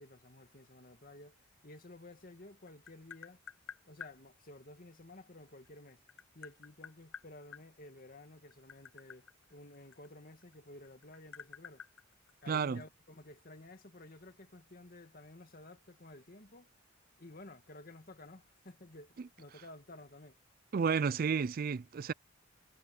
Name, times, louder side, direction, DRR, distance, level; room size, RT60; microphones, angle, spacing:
voice 1, 0.0-3.4 3.9-6.0 6.3-11.8 12.4-16.7 17.2-20.4, left 2 dB, 45° left, 2.2 m, -53 dB
Tap, 2.5-4.2 5.5-7.6 8.4-10.5 10.8-12.8, left 7 dB, 70° left, 0.8 m, -50 dB
voice 2, 12.5-12.8 20.7-22.1, right 6 dB, 45° right, 0.4 m, -31 dB
head